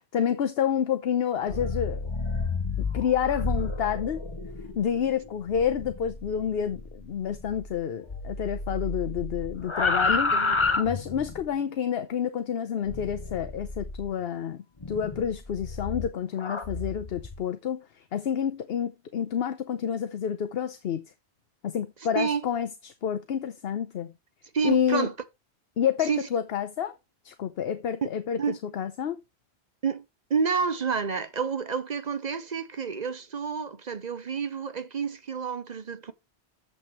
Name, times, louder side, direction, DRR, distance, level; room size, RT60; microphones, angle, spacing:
voice 1, 0.1-2.1 2.9-4.2 4.8-10.3 10.8-21.1 21.6-24.1 24.6-25.1 25.8-26.9 27.2-29.2, left 8 dB, 70° left, 1.0 m, -29 dB
sound 1, 1.4-11.5 12.9-14.1 14.8-17.4, left 3 dB, 30° left, 1.0 m, -31 dB
voice 2, 10.3-10.8 22.1-22.5 24.5-25.1 26.1-26.2 28.4-28.6 29.8-30.0 30.3-36.1, right 5 dB, 45° right, 0.8 m, -29 dB
9.0 x 7.8 x 3.1 m
omnidirectional pair, 1.1 m